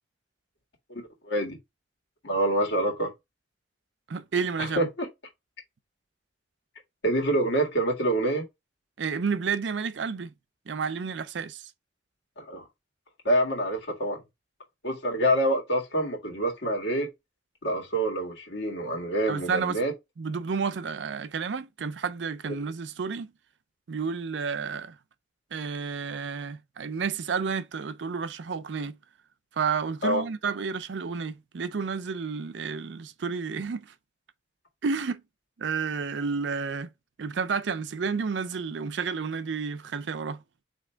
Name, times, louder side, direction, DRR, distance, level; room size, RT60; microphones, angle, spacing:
voice 1, 0.9-1.6 2.2-3.1 4.6-5.1 7.0-8.5 12.4-12.6 13.2-14.2 14.8-17.1 17.6-19.9 30.0-30.2, right 1 dB, 85° left, 1.6 m, -26 dB
voice 2, 4.1-4.9 9.0-10.3 10.7-11.7 19.3-19.8 20.2-23.3 23.9-25.0 25.5-29.0 29.6-33.9 34.8-35.2 35.6-36.9 37.2-40.4, right 5 dB, 85° right, 0.5 m, -31 dB
4.3 x 2.9 x 3.4 m
head